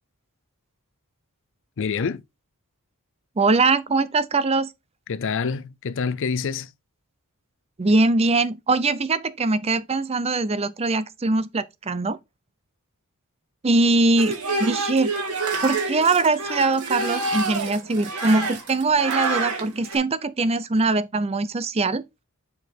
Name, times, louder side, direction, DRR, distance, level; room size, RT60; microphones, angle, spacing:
voice 1, 1.8-2.2 5.1-6.7, left 5 dB, 60° left, 0.5 m, -26 dB
voice 2, 3.4-4.7 7.8-12.2 13.6-15.1 15.6-22.0, right 3 dB, 30° right, 0.5 m, -22 dB
sound 1, 14.2-20.0, right 3 dB, 85° right, 2.1 m, -28 dB
6.9 x 4.8 x 3.9 m
head